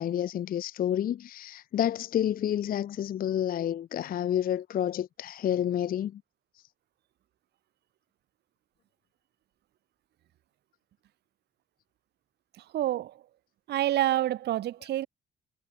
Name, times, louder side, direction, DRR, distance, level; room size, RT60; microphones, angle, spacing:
voice 1, 0.0-6.2, left 10 dB, 45° left, 0.4 m, -29 dB
voice 2, 12.7-13.1 13.7-15.1, right 13 dB, 55° right, 0.4 m, -27 dB
cardioid pair, 90°, 20 cm